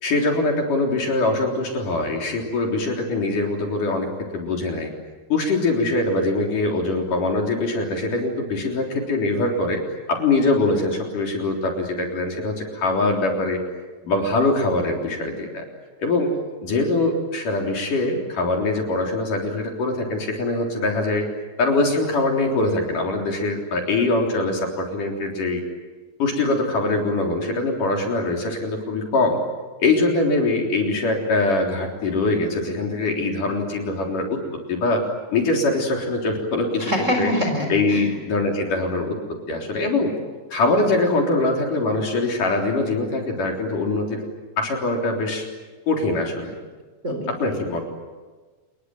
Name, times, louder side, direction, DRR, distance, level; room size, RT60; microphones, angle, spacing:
voice 1, 0.0-4.1 4.3-4.9 5.3-9.8 10.1-13.6 14.0-15.6 16.0-16.3 16.6-21.3 21.6-25.6 26.2-29.4 29.8-34.4 34.7-35.0 35.3-36.9 37.2-37.3 37.7-39.2 39.5-40.1 40.5-44.2 44.6-45.4 45.9-46.5 47.3-47.8, left 2 dB, 50° left, 1 dB, 4.9 m, -23 dB
voice 2, 36.8-38.2 47.0-47.3, left 1 dB, 15° right, 4 dB, 4.1 m, -24 dB
29.5 x 21.5 x 9.2 m, 1.3 s
omnidirectional pair, 5.0 m